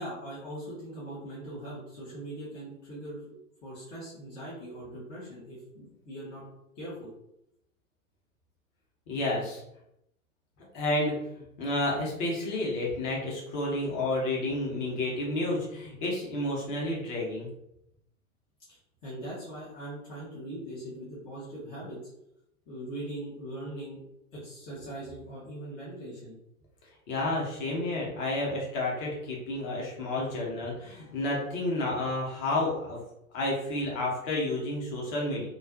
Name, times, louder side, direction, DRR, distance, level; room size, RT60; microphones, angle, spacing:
voice 1, 0.0-6.4 6.8-7.1 18.7-22.0 22.7-24.0 24.3-26.4 30.1-30.2, right 1 dB, 15° left, -9 dB, 0.4 m, -41 dB
voice 2, 9.1-9.6 10.7-17.5 27.1-33.0 33.3-35.5, left 2 dB, 35° left, -3 dB, 0.8 m, -30 dB
2.4 x 2.3 x 2.3 m, 0.81 s
figure-of-eight pair, 100°, 44 cm